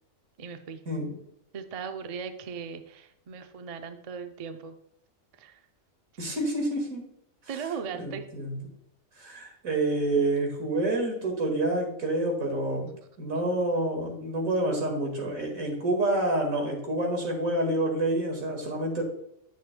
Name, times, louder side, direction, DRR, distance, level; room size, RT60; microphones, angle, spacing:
voice 1, 0.4-0.8 1.5-4.8 5.4-5.6 7.5-8.3, right 6 dB, 45° right, 7 dB, 0.4 m, -38 dB
voice 2, 6.2-7.0 8.0-8.6 9.2-12.9 13.2-19.0, right 1 dB, 90° right, 2 dB, 2.3 m, -28 dB
9.3 x 7.4 x 2.2 m, 0.76 s
omnidirectional pair, 1.4 m